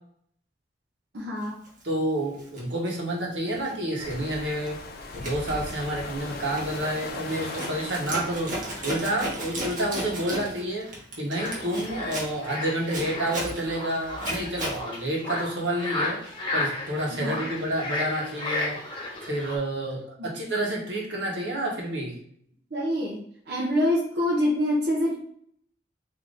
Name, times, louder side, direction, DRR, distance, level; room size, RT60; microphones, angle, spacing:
voice 1, 1.1-1.6 17.1-17.4 22.7-25.1, left 1 dB, 60° right, -5 dB, 0.9 m, -26 dB
Zipper (clothing), 1.7-1.8 2.3-4.3 4.7-14.8, right 1 dB, 45° right, 1.3 m, -36 dB
voice 2, 1.8-4.8 5.1-18.8 19.2-22.2, right 1 dB, 80° right, -2 dB, 1.4 m, -29 dB
sound 1, 4.0-9.0, left 3 dB, 55° left, 0.6 m, -38 dB
sound 2, 11.4-19.6, left 2 dB, 25° left, 1.2 m, -33 dB
3.7 x 3.0 x 3.8 m, 0.64 s
head